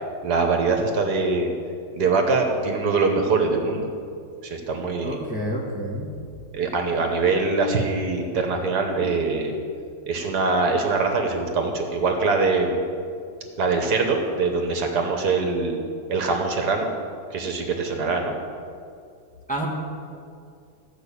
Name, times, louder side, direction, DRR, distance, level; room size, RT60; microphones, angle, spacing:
voice 1, 0.0-1.5 1.9-3.9 4.4-5.2 6.5-9.5 10.1-12.8 13.6-15.8 16.1-16.9 17.3-18.4, right 3 dB, 70° right, 4 dB, 1.7 m, -23 dB
voice 2, 5.0-6.1 19.5-19.7, right 1 dB, 5° left, -3 dB, 1.8 m, -29 dB
14.0 x 5.8 x 8.3 m, 2.4 s
omnidirectional pair, 1.8 m